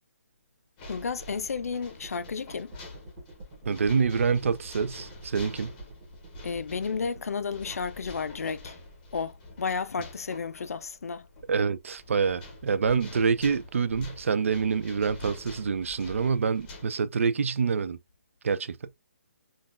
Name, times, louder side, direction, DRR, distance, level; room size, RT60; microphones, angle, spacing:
sound 1, 0.8-16.8, left 2 dB, 15° left, 0.7 m, -46 dB
voice 1, 0.9-2.7 6.4-8.8 9.1-11.3, left 5 dB, 85° left, 0.4 m, -32 dB
sound 2, 1.9-7.6, right 2 dB, 20° right, 1.1 m, -48 dB
voice 2, 3.7-5.7 11.5-18.0 18.4-18.8, right 5 dB, 60° right, 0.4 m, -26 dB
3.7 x 2.3 x 2.4 m
hypercardioid pair, 170°, 8 cm